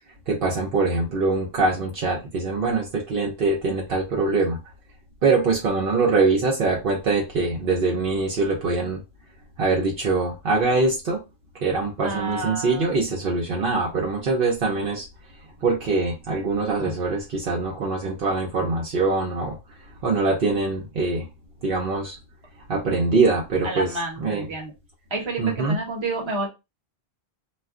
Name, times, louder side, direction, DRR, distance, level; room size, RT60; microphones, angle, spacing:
voice 1, 0.3-4.6 5.2-9.0 9.6-11.2 11.6-15.1 15.6-19.6 20.0-21.3 21.6-22.2 22.7-24.5 25.4-25.8, right 3 dB, 60° right, 0.8 m, -23 dB
voice 2, 12.0-13.0 16.8-16.9 23.6-24.7 25.1-26.5, right 2 dB, 30° right, 0.9 m, -30 dB
2.4 x 2.2 x 3.5 m
omnidirectional pair, 1.1 m